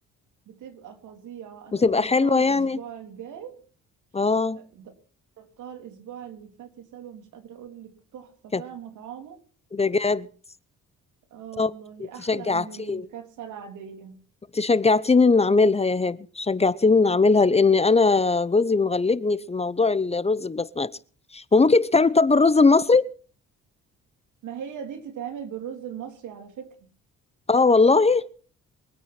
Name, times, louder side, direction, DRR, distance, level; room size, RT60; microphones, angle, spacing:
voice 1, 0.5-3.6 4.6-4.9 5.4-9.4 11.3-14.2 24.4-26.9, right 8 dB, 80° right, 3.4 m, -40 dB
voice 2, 1.7-2.8 4.1-4.6 8.5-8.6 9.7-10.3 11.6-11.7 12.2-13.1 14.5-20.9 21.3-23.1 27.5-28.3, left 4 dB, 20° left, 0.8 m, -20 dB
23.5 x 8.9 x 5.9 m
cardioid pair, 90°, 30 cm